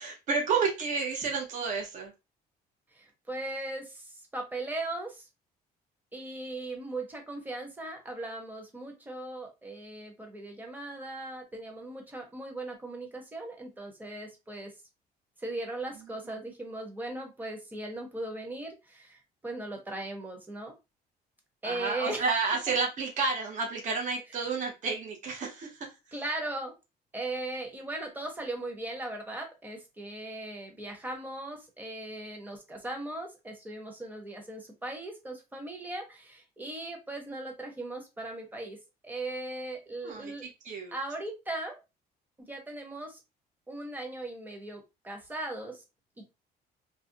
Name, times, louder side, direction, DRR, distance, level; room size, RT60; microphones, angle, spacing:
voice 1, 0.0-2.1 16.1-16.4 21.6-25.9 40.0-40.9, right 4 dB, 50° right, 1 dB, 0.7 m, -31 dB
voice 2, 2.9-5.3 6.1-14.7 15.4-20.7 21.6-22.3 26.1-26.7 27.1-38.8 39.0-40.5 40.9-41.8 42.5-43.2 43.7-45.8, right 2 dB, 10° right, 2 dB, 0.8 m, -38 dB
2.4 x 2.1 x 2.7 m, 0.26 s
cardioid pair, 110°, 17 cm